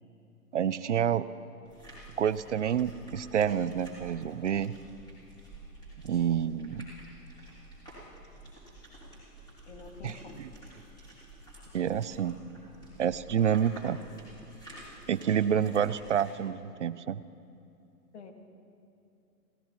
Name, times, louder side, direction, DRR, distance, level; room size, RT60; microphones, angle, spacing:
voice 1, 0.5-1.3 2.2-4.7 6.0-6.9 10.0-10.5 11.7-12.4 13.0-14.0 15.1-17.2, right 8 dB, 50° right, 16 dB, 0.4 m, -28 dB
sound 1, 1.7-16.3, right 1 dB, 10° left, 3.5 m, -50 dB
voice 2, 9.7-10.4 18.1-18.3, left 4 dB, 45° left, 5 dB, 1.7 m, -47 dB
28.5 x 16.5 x 3.0 m, 2.7 s
hypercardioid pair, 140°, 48 cm